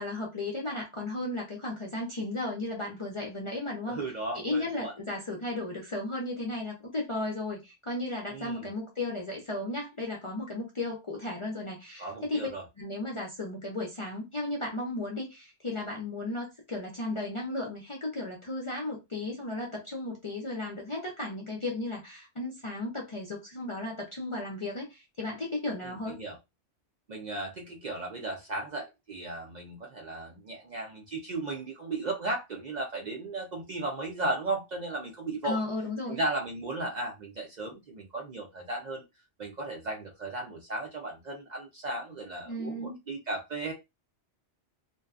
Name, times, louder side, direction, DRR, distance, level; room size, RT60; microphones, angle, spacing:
voice 1, 0.0-4.0 4.3-12.5 12.8-26.2 35.4-36.2 42.5-43.0, left 2 dB, 40° left, 0.5 m, -35 dB
voice 2, 3.9-4.9 8.3-8.7 12.0-12.6 25.8-26.4 27.1-35.6 36.1-39.0 39.4-43.7, right 2 dB, 55° right, 0.5 m, -35 dB
2.6 x 2.2 x 2.3 m
omnidirectional pair, 1.1 m